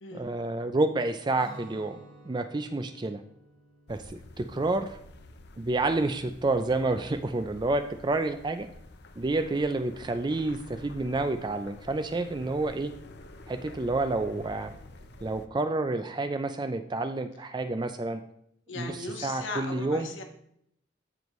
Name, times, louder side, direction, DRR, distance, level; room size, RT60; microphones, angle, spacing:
voice 1, 0.1-2.0 2.3-3.2 3.9-5.0 5.6-8.7 9.2-12.9 13.5-14.7 15.2-18.2 18.8-20.1, right 2 dB, 20° right, 9 dB, 0.4 m, -29 dB
Guitar, 1.4-7.2, right 2 dB, 65° right, 2.5 m, -54 dB
sound 1, 3.9-15.5, left 2 dB, 60° left, 0.7 m, -49 dB
voice 2, 18.7-20.2, left 3 dB, 75° left, 4 dB, 1.4 m, -38 dB
14.0 x 5.2 x 3.1 m, 0.72 s
head